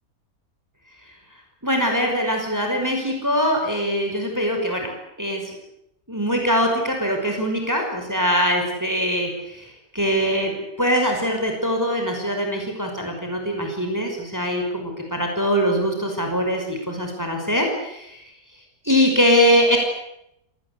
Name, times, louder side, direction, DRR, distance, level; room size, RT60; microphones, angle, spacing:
voice 1, 1.6-4.9 5.2-5.6 6.1-18.2 18.8-19.8, equal, 10° right, 2 dB, 5.4 m, -22 dB
29.5 x 19.0 x 8.3 m, 0.80 s
omnidirectional pair, 1.5 m